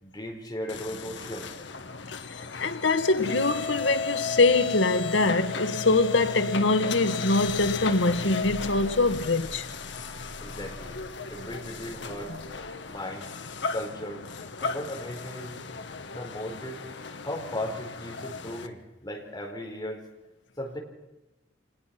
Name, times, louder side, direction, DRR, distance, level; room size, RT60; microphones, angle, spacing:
voice 1, 0.0-1.5 10.4-11.0 11.3-12.4 12.9-13.3 13.7-14.2 14.6-15.6 16.1-16.9 17.2-20.1 20.6-20.8, left 1 dB, 20° left, 4.3 m, -36 dB
sound 1, 0.7-18.7, left 5 dB, 70° left, 1.4 m, -35 dB
voice 2, 2.6-9.7 18.2-18.3, left 3 dB, 90° left, 1.5 m, -23 dB
26.0 x 20.0 x 5.9 m
head